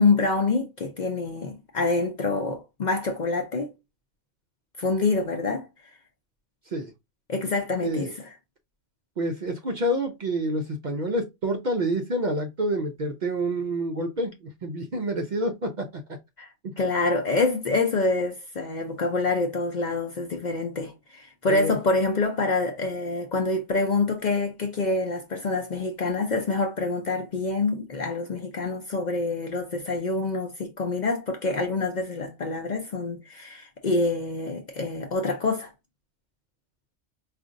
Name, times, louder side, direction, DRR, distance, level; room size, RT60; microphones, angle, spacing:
voice 1, 0.0-3.7 4.8-5.7 7.3-8.4 16.4-35.7, left 3 dB, 50° left, 0.6 m, -26 dB
voice 2, 9.2-16.0 16.6-16.7 21.5-21.8, right 1 dB, 55° right, 0.5 m, -28 dB
4.9 x 2.5 x 2.5 m
omnidirectional pair, 1.2 m